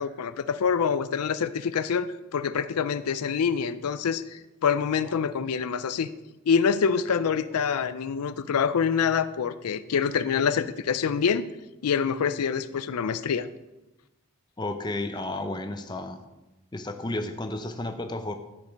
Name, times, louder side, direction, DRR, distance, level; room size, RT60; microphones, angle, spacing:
voice 1, 0.0-6.1 6.5-11.4 11.8-13.5, left 6 dB, 90° left, 14 dB, 0.4 m, -26 dB
voice 2, 14.6-16.2 16.7-18.3, left 2 dB, 20° left, 7 dB, 0.6 m, -32 dB
12.0 x 5.2 x 5.2 m, 1.0 s
head